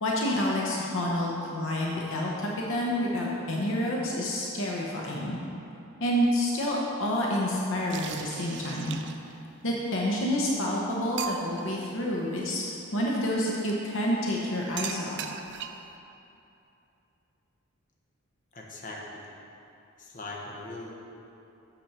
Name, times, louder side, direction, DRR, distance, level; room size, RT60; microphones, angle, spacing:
voice 1, 0.0-5.4 6.0-9.0 9.6-15.2, left 1 dB, 65° left, -3 dB, 0.9 m, -28 dB
sound 1, 7.9-9.4 10.3-10.4 10.7-10.8 11.2-11.7 13.4-13.7 14.8-15.9, right 8 dB, 55° right, 0.4 m, -38 dB
voice 2, 18.5-19.3 20.0-20.9, left 2 dB, 40° left, -3 dB, 1.2 m, -40 dB
6.9 x 5.9 x 6.0 m, 2.8 s
head